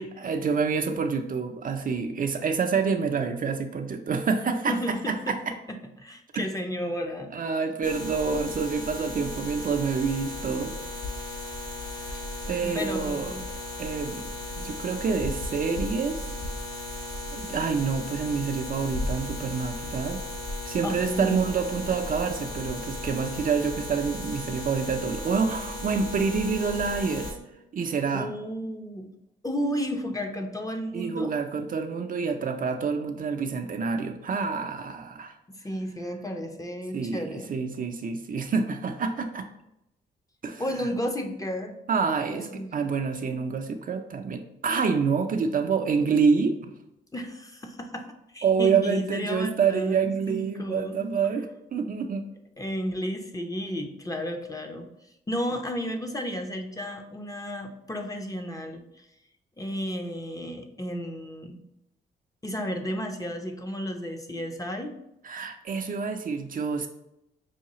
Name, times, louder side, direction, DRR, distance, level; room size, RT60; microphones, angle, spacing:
voice 1, 0.0-5.5 6.3-6.5 7.3-10.7 12.0-12.1 12.5-13.4 13.8-14.3 14.6-16.2 17.3-20.2 20.7-27.4 27.7-28.3 30.9-35.3 36.9-39.5 40.4-40.6 41.9-46.7 48.4-52.3 65.2-66.9, right 5 dB, 45° right, 5 dB, 0.5 m, -27 dB
voice 2, 4.7-5.4 5.7-7.3 12.5-13.4 20.8-21.4 28.1-29.1 29.4-31.3 35.6-37.5 40.6-41.7 42.3-42.8 47.1-48.1 48.3-51.0 52.6-54.9 55.3-59.0 59.6-61.6 62.4-64.9, equal, 15° left, 4 dB, 0.6 m, -33 dB
sound 1, 7.8-27.3, left 1 dB, 60° left, 1.3 m, -36 dB
5.6 x 2.3 x 2.9 m, 0.84 s
supercardioid pair, 55°, 20 cm